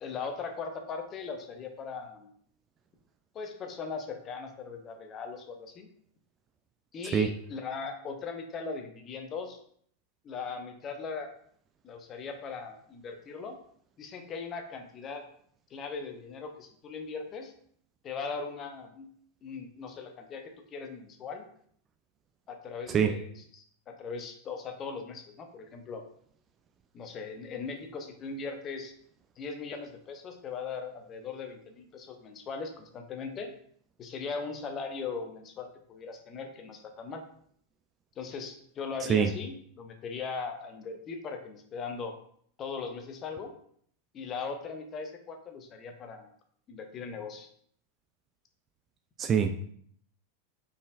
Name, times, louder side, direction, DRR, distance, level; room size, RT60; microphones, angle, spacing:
voice 1, 0.0-2.3 3.3-5.9 6.9-9.6 10.2-11.3 11.8-13.6 14.0-15.2 15.7-17.5 18.0-19.1 19.4-21.4 22.5-26.0 26.9-28.9 29.4-33.5 34.0-37.2 38.2-42.1 42.6-43.5 44.1-46.3 46.7-47.5, left 5 dB, 30° left, 5 dB, 0.7 m, -39 dB
voice 2, 49.2-49.7, right 7 dB, 25° right, 7 dB, 0.3 m, -24 dB
5.1 x 4.2 x 2.4 m, 0.62 s
figure-of-eight pair, 90°, 0 cm